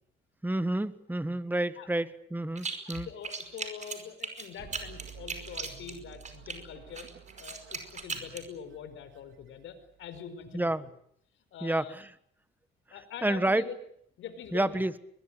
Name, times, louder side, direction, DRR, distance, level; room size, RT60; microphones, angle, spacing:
voice 1, 0.4-3.1 10.5-10.8 11.6-12.1 13.2-13.6 14.5-14.9, right 1 dB, 10° right, 14 dB, 1.6 m, -29 dB
sound 1, 2.6-3.0 3.2-6.6 7.0-8.5, right 5 dB, 35° right, 5.2 m, -38 dB
voice 2, 2.8-7.1 7.4-10.9 11.5-11.9 12.9-13.8 14.2-14.8, left 8 dB, 80° left, 10 dB, 4.7 m, -44 dB
sound 2, 4.6-10.1, right 8 dB, 75° right, 4.4 m, -52 dB
23.0 x 21.5 x 8.8 m, 0.68 s
cardioid pair, 90°, 20 cm